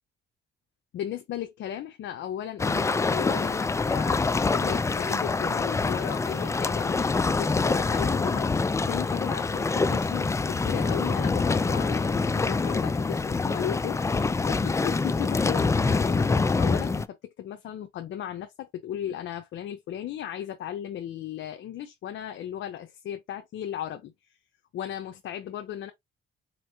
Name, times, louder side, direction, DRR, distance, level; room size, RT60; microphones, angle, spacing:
voice 1, 0.9-4.2 4.5-24.1 24.7-25.9, left 11 dB, 70° left, 0.7 m, -36 dB
sound 1, 2.6-17.1, left 4 dB, 15° left, 0.3 m, -25 dB
4.2 x 3.0 x 2.7 m
cardioid pair, 90°, 20 cm